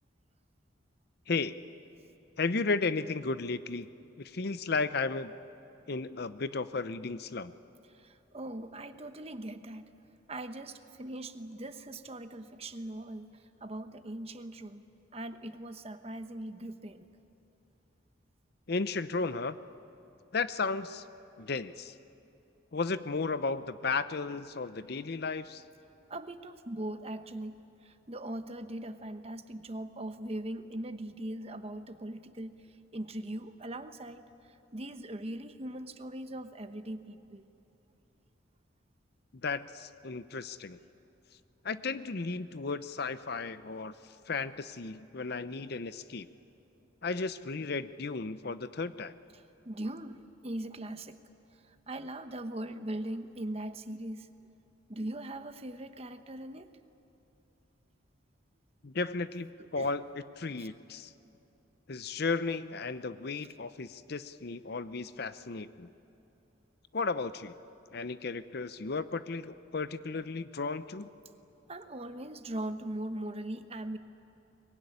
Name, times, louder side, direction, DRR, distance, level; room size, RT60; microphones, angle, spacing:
voice 1, 1.3-1.6 2.4-3.9 4.2-5.3 5.9-7.5 18.7-19.6 20.3-21.0 21.4-21.9 22.7-25.6 39.4-40.8 41.6-43.9 44.3-46.3 47.0-49.1 58.8-61.1 61.9-65.9 66.9-67.5 67.9-71.1, left 4 dB, 55° left, 13 dB, 0.7 m, -34 dB
voice 2, 7.9-9.8 10.3-13.3 13.6-14.8 15.1-17.1 26.1-27.6 27.8-32.6 32.9-34.3 34.7-37.5 49.6-51.2 51.9-54.3 54.9-56.7 59.6-59.9 60.6-60.7 71.7-74.0, right 1 dB, 30° right, 9 dB, 1.0 m, -40 dB
23.5 x 22.0 x 9.8 m, 2.9 s
head